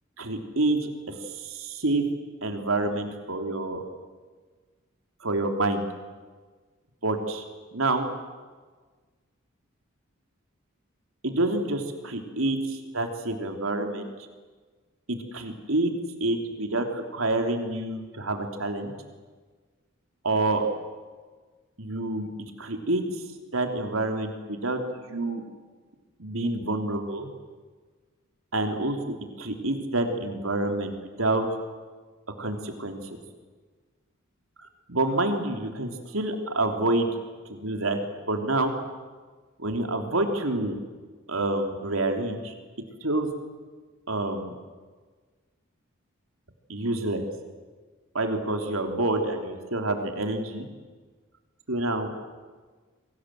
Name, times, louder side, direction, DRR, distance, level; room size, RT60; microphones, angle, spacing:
voice 1, 0.2-2.1 2.4-3.8 5.2-5.9 7.0-7.4 7.7-8.1 11.2-14.1 15.1-15.9 16.2-18.9 20.2-20.6 21.8-22.3 22.6-25.4 26.2-27.3 28.5-31.5 32.4-33.2 34.6-37.1 37.5-38.0 38.3-38.7 39.6-40.8 41.3-42.5 43.0-43.3 44.1-44.5 46.7-47.2 48.1-50.7 51.7-52.1, right 2 dB, 90° right, 4 dB, 3.4 m, -28 dB
28.0 x 24.0 x 7.9 m, 1.4 s
head